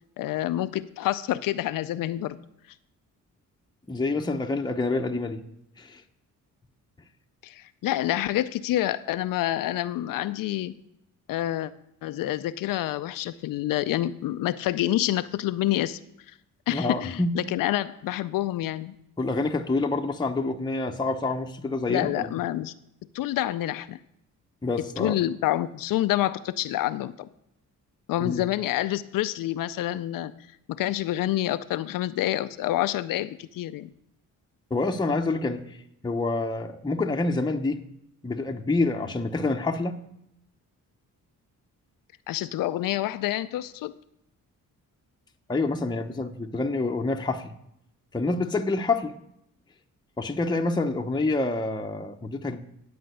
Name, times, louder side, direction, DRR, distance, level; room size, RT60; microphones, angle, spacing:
voice 1, 0.2-2.4 7.4-10.7 11.3-11.7 12.0-16.0 16.7-19.0 21.9-22.7 23.1-24.0 25.0-27.3 28.1-30.3 30.7-33.9 42.3-43.9, left 14 dB, 90° left, 13 dB, 0.5 m, -27 dB
voice 2, 3.9-5.4 5.8-6.0 16.7-17.3 19.2-22.3 24.6-25.2 28.2-28.4 34.7-37.8 38.2-40.0 45.5-47.5 48.1-49.2 50.2-52.6, left 3 dB, 15° left, 3 dB, 0.7 m, -27 dB
10.0 x 5.1 x 7.8 m, 0.78 s
cardioid pair, 90°, 32 cm